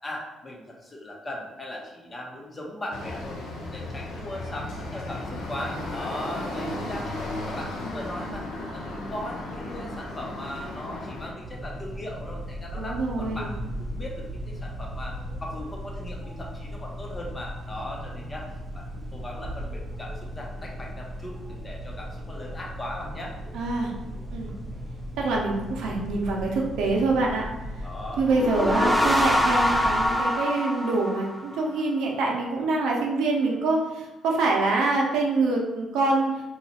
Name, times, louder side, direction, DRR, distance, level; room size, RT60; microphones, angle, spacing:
voice 1, 0.0-3.4 3.7-7.2 7.5-23.3 27.8-28.7, left 1 dB, 25° left, -2 dB, 0.8 m, -38 dB
sound 1, 2.9-11.3, left 2 dB, 80° left, 0.7 m, -35 dB
sound 2, 11.4-30.1, equal, 15° right, 0.8 m, -37 dB
voice 2, 12.7-13.5 23.5-23.9 24.3-24.5 25.2-27.5 28.2-36.3, right 3 dB, 90° right, -1 dB, 0.7 m, -25 dB
sound 3, 28.3-31.8, equal, 5° left, 0.4 m, -24 dB
2.9 x 2.4 x 4.2 m, 1.0 s
cardioid pair, 90°, 0 cm